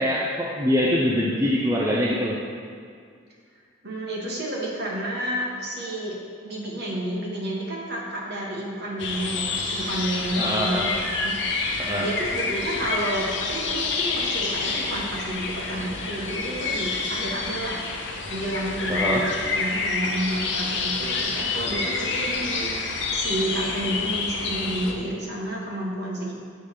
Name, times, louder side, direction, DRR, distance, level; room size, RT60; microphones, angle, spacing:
voice 1, 0.0-2.4 10.4-10.9 11.8-12.1 18.9-19.2, equal, 15° right, -4 dB, 0.4 m, -24 dB
voice 2, 3.8-6.1 6.4-10.9 11.2-11.3 12.0-17.8 18.3-19.2 19.5-22.8 23.1-26.3, right 1 dB, 50° right, -4 dB, 1.2 m, -30 dB
sound 1, 9.0-24.9, left 3 dB, 60° left, 0.6 m, -28 dB
6.9 x 3.3 x 5.7 m, 2.2 s
head